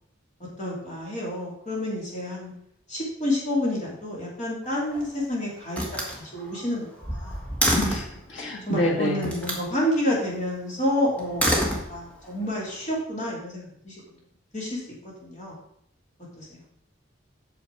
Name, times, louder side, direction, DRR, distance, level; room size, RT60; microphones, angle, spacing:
voice 1, 0.6-2.5 2.9-5.8 6.2-7.4 8.7-14.0 14.5-14.8 15.2-15.6 16.4-16.6, left 1 dB, 35° left, -4 dB, 3.0 m, -29 dB
Slam, 4.6-5.2 5.7-8.2 9.2-9.7 11.2-12.3, equal, 5° left, 1.5 m, -27 dB
voice 2, 7.7-9.3, equal, 75° left, -1 dB, 2.1 m, -27 dB
8.3 x 6.3 x 4.7 m, 0.71 s
head